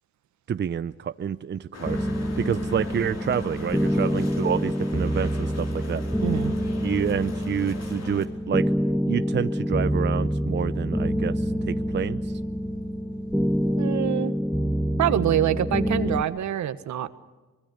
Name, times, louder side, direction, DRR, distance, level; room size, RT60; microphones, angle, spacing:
voice 1, 0.5-2.1 2.4-6.0 6.8-8.7 9.1-12.3, right 8 dB, 35° right, 13 dB, 0.6 m, -28 dB
sound 1, 1.7-8.3, left 4 dB, 60° left, 4.9 m, -41 dB
sound 2, 1.8-16.2, equal, ahead, 1.2 m, -26 dB
voice 2, 6.2-6.5 13.8-14.3 15.0-17.1, right 11 dB, 70° right, 11 dB, 1.5 m, -25 dB
25.0 x 21.5 x 6.5 m, 1.3 s
cardioid pair, 90°, 30 cm